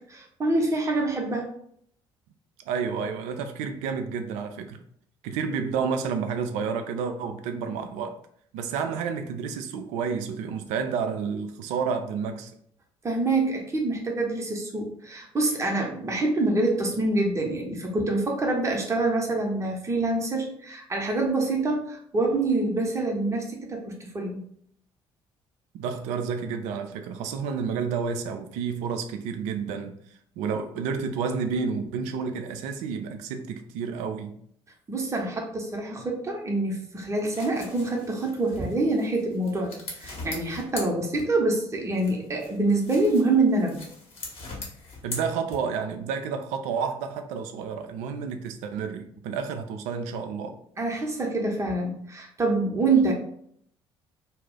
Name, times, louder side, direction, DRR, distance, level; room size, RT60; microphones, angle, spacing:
voice 1, 0.0-1.5 13.0-24.4 34.9-43.8 50.8-53.1, right 2 dB, 20° right, 0.7 m, -26 dB
voice 2, 2.7-4.8 5.2-8.2 8.5-12.5 25.7-30.0 30.4-34.3 45.0-50.6, right 6 dB, 60° right, 0.4 m, -30 dB
sound 1, 37.0-41.6 41.9-45.9, left 3 dB, 45° left, 0.9 m, -41 dB
2.4 x 2.0 x 3.6 m
figure-of-eight pair, 50°, 14 cm